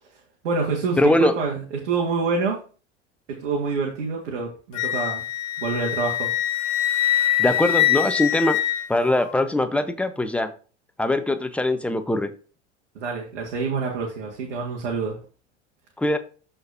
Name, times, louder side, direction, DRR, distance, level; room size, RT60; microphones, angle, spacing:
voice 1, 0.4-2.6 3.3-5.2 5.6-6.3 12.9-15.2, right 4 dB, 65° right, -3 dB, 2.0 m, -27 dB
voice 2, 1.0-1.3 7.4-8.6 8.9-10.5 11.0-12.3 16.0-16.2, left 1 dB, 5° left, 9 dB, 0.8 m, -21 dB
Wind instrument woodwind instrument, 4.7-9.3, left 12 dB, 50° left, 1.0 m, -23 dB
12.5 x 4.5 x 2.8 m, 0.37 s
figure-of-eight pair, 80°, 35 cm